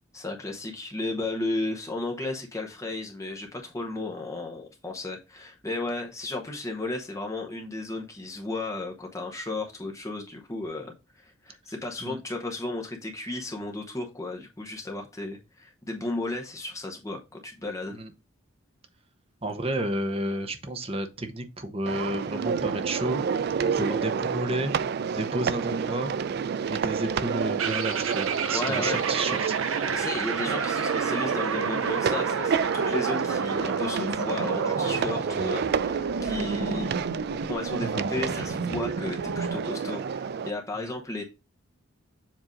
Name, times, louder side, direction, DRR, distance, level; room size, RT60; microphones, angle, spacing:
voice 1, 0.1-18.0 28.5-29.0 29.9-36.9 37.5-41.2, left 2 dB, 15° left, 0.8 m, -34 dB
voice 2, 19.4-23.2 23.7-24.7 25.2-26.1 26.7-29.6 40.8-40.9, right 1 dB, 30° right, 0.8 m, -31 dB
sound 1, 21.9-40.5, right 6 dB, 50° right, 0.3 m, -29 dB
sound 2, 27.6-39.7, right 5 dB, 75° right, 0.7 m, -32 dB
7.4 x 2.6 x 5.1 m
head